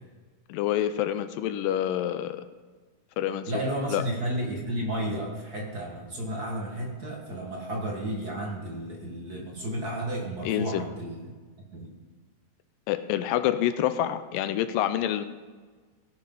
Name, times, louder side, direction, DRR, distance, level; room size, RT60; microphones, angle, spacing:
voice 1, 0.5-2.5 3.2-3.5 3.9-4.0 10.5-10.8 12.9-15.3, left 11 dB, 80° left, 11 dB, 2.2 m, -27 dB
voice 2, 3.5-11.3 11.7-11.9, right 1 dB, 40° right, -1 dB, 1.5 m, -32 dB
16.5 x 9.9 x 3.9 m, 1.4 s
omnidirectional pair, 4.2 m